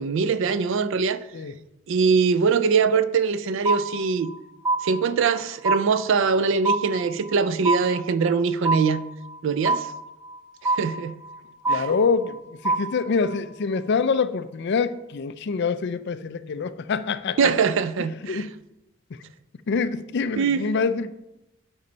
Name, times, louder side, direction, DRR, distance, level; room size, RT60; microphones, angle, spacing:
voice 1, 0.0-1.2 1.9-4.3 4.8-9.0 9.4-9.9 10.6-11.1 11.7-11.9 17.4-18.4 20.4-20.6, right 5 dB, 60° right, 0.4 m, -22 dB
sound 1, 3.7-4.4 4.7-5.4 5.7-6.4 6.7-7.4 7.7-8.4 8.7-9.4 9.7-10.4 10.7-11.4 11.7-12.4 12.7-13.4, right 3 dB, 15° right, 0.8 m, -25 dB
voice 2, 11.7-17.5 18.0-18.6 19.1-19.2 19.7-21.1, left 5 dB, 55° left, 0.4 m, -26 dB
8.6 x 5.4 x 3.9 m
head